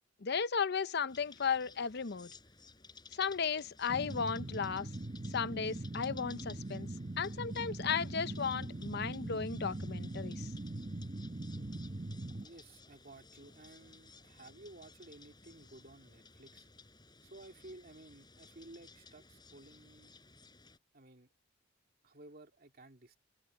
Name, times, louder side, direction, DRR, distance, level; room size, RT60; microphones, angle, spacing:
voice 1, 0.2-2.3 3.1-4.9 5.3-6.9 7.2-10.5, left 6 dB, 55° left, 0.7 m, -35 dB
sound 1, 1.1-20.8, left 4 dB, 20° left, 4.3 m, -58 dB
sound 2, 3.9-12.5, right 2 dB, 30° right, 0.9 m, -41 dB
voice 2, 12.4-16.7 17.2-20.1 20.9-21.3 22.0-23.2, right 2 dB, 50° right, 2.5 m, -55 dB
head